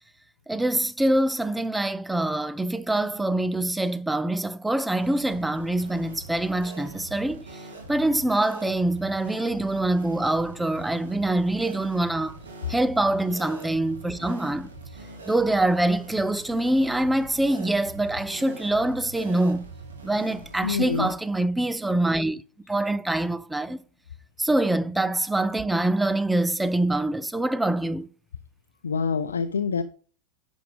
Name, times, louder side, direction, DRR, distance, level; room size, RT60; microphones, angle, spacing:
voice 1, 0.5-7.4 7.9-12.4 12.7-14.7 15.3-19.7 20.0-22.4 22.7-23.8 24.4-28.1, right 1 dB, 5° right, 0.5 m, -25 dB
sound 1, 5.0-21.1, right 2 dB, 70° right, 2.8 m, -43 dB
voice 2, 20.6-21.1 28.8-29.8, left 5 dB, 70° left, 0.5 m, -26 dB
10.5 x 6.2 x 3.5 m
figure-of-eight pair, 90°, 0 cm